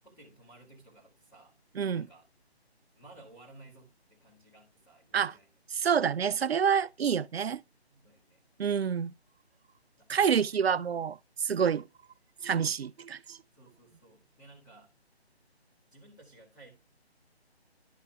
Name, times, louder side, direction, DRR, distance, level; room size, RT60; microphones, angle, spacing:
voice 1, 0.0-1.6 1.9-2.2 2.9-5.5 7.9-8.4 10.0-11.0 11.4-11.9 13.5-14.9 15.9-16.7, right 2 dB, 10° left, 1.6 m, -56 dB
voice 2, 1.8-2.1 5.1-5.3 5.8-7.6 8.6-9.1 10.1-11.8 12.4-13.4, right 7 dB, 65° right, 0.5 m, -28 dB
12.0 x 5.5 x 2.3 m
figure-of-eight pair, 155°, 33 cm